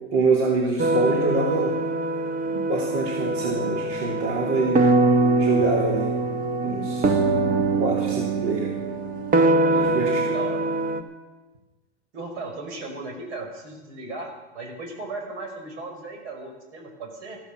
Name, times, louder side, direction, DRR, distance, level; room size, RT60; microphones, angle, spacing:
voice 1, 0.1-1.7 2.5-4.8 5.4-6.1 6.6-7.2 7.8-8.7 9.7-10.4, right 3 dB, 60° right, -2 dB, 3.3 m, -25 dB
sound 1, 0.8-11.0, right 2 dB, 25° right, 1.3 m, -23 dB
voice 2, 9.7-10.7 12.1-17.4, right 3 dB, 75° right, 3 dB, 5.4 m, -37 dB
14.5 x 13.5 x 6.2 m, 1.2 s
supercardioid pair, 120°, 34 cm